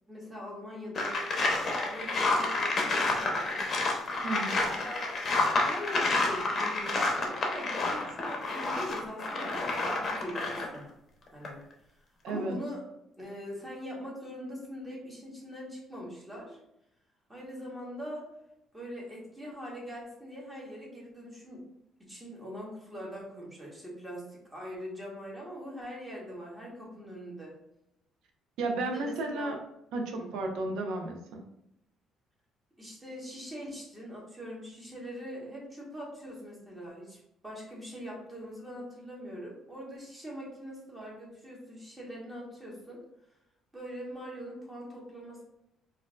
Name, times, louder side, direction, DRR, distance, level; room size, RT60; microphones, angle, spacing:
voice 1, 0.1-1.2 1.9-3.6 4.8-5.2 5.6-10.9 11.3-11.6 12.3-12.8 13.2-16.6 17.3-18.3 18.7-21.6 22.0-27.5 28.8-29.6 30.1-30.3 32.8-43.0 43.7-45.4, equal, 10° right, -4 dB, 1.2 m, -42 dB
sound 1, 0.9-10.8 11.3-11.5, left 2 dB, 40° left, 0.7 m, -29 dB
voice 2, 4.2-4.6 12.2-12.6 28.6-29.6 29.9-31.4, right 2 dB, 80° right, 3 dB, 0.6 m, -33 dB
4.3 x 2.5 x 2.4 m, 0.83 s
cardioid pair, 130°, 0 cm